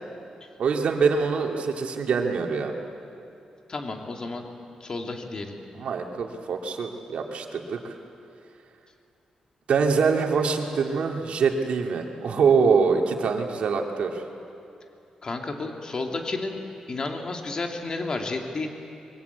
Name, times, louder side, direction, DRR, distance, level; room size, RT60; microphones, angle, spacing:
voice 1, 0.6-2.7 5.7-7.8 9.7-14.2, right 5 dB, 70° right, 2 dB, 2.7 m, -24 dB
voice 2, 3.7-4.5 4.8-5.5 15.2-16.6 16.9-18.7, left 3 dB, 35° left, 3 dB, 2.5 m, -31 dB
26.5 x 23.5 x 8.3 m, 2.7 s
wide cardioid pair, 130°, 2 cm